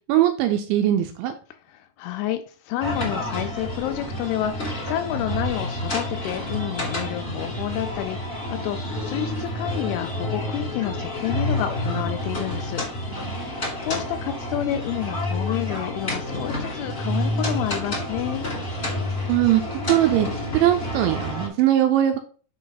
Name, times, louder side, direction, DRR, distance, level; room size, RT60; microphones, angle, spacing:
voice 1, 0.1-1.3 13.1-13.6 19.3-19.6 19.9-20.3 20.5-22.2, right 12 dB, 80° right, 5 dB, 2.8 m, -21 dB
voice 2, 1.7-12.8 13.3-13.5 13.8-18.5, left 12 dB, 85° left, 6 dB, 2.8 m, -29 dB
sound 1, 2.8-21.5, left 1 dB, 25° left, 1.4 m, -29 dB
6.8 x 5.0 x 4.0 m, 0.40 s
omnidirectional pair, 5.8 m